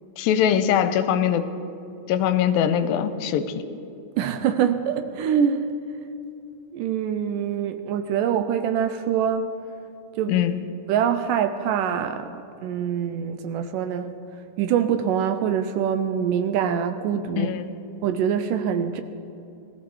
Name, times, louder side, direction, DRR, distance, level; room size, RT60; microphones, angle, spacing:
voice 1, 0.2-1.5 2.1-3.6 10.3-10.6 17.4-17.7, left 9 dB, 85° left, 10 dB, 2.4 m, -22 dB
voice 2, 4.2-5.7 6.7-9.5 10.2-10.4 10.9-12.3 12.6-14.1 14.6-17.6 18.0-19.0, right 8 dB, 80° right, 9 dB, 2.1 m, -24 dB
19.0 x 14.0 x 4.6 m, 2.6 s
omnidirectional pair, 4.2 m